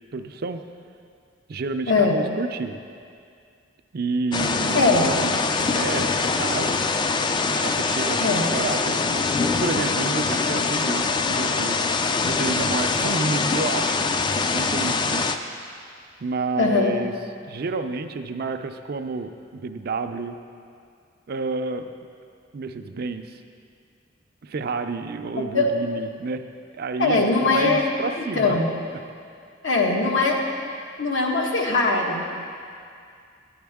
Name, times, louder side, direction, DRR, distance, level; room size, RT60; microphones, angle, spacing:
voice 1, 0.1-0.6 1.5-2.8 3.9-6.8 7.6-11.8 12.3-14.0 14.5-15.4 15.7-15.8 16.2-17.1 17.4-20.4 21.3-21.9 22.5-23.4 24.4-26.4 26.7-28.6, right 4 dB, 55° right, 8 dB, 0.4 m, -30 dB
voice 2, 1.9-2.2 4.7-5.1 8.2-8.5 16.6-16.9 25.3-25.7 27.0-27.8 28.3-28.7 29.6-30.4 31.0-32.3, left 3 dB, 90° left, 0 dB, 1.2 m, -21 dB
sound 1, 4.3-15.4, left 4 dB, 25° left, 0.3 m, -23 dB
11.0 x 9.4 x 3.5 m, 2.3 s
head